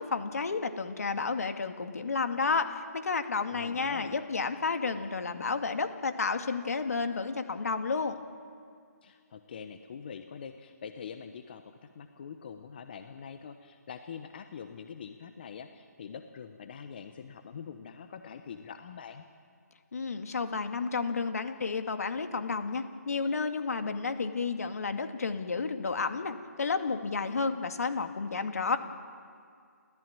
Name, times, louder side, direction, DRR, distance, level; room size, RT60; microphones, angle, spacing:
voice 1, 0.0-8.2 19.9-28.8, left 4 dB, 60° left, 7 dB, 2.3 m, -31 dB
voice 2, 3.5-4.2 9.0-19.2, left 7 dB, 35° left, 8 dB, 1.0 m, -44 dB
29.5 x 14.5 x 8.9 m, 2.2 s
hypercardioid pair, 165°, 9 cm